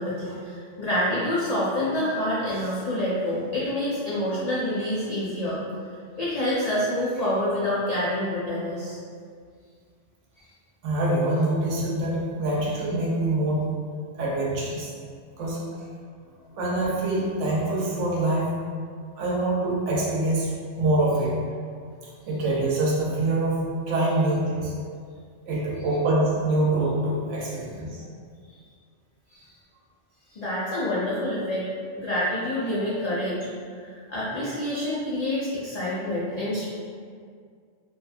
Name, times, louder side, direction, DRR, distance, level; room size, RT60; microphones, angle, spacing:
voice 1, 0.0-5.6 6.2-9.0 29.3-29.4 30.3-31.7 31.9-33.4 33.8-36.6, left 1 dB, 70° left, -8 dB, 0.3 m, -27 dB
voice 2, 10.8-13.7 14.2-14.9 15.4-15.6 16.6-18.5 19.2-21.3 22.3-24.7 25.5-28.0, right 2 dB, 80° right, -5 dB, 1.0 m, -25 dB
2.8 x 2.3 x 2.4 m, 2.1 s
omnidirectional pair, 1.2 m